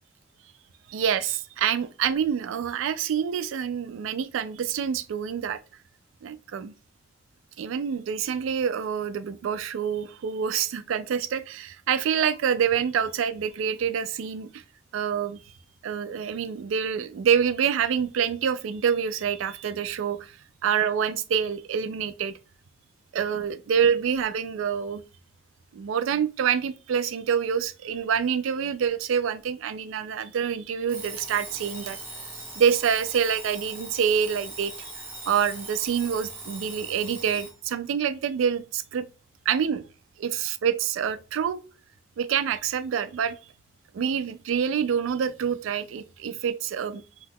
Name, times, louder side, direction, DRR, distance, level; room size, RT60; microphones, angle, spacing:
voice 1, 0.9-5.6 6.2-6.7 7.6-14.6 14.9-15.4 15.8-20.4 20.6-22.3 23.1-25.0 25.7-32.0 32.6-34.9 35.3-39.0 39.5-39.8 40.2-41.6 42.2-43.4 43.9-47.0, right 7 dB, 80° right, 0.3 m, -26 dB
Alarm, 30.9-37.6, right 2 dB, 10° right, 0.8 m, -40 dB
2.7 x 2.3 x 3.5 m
head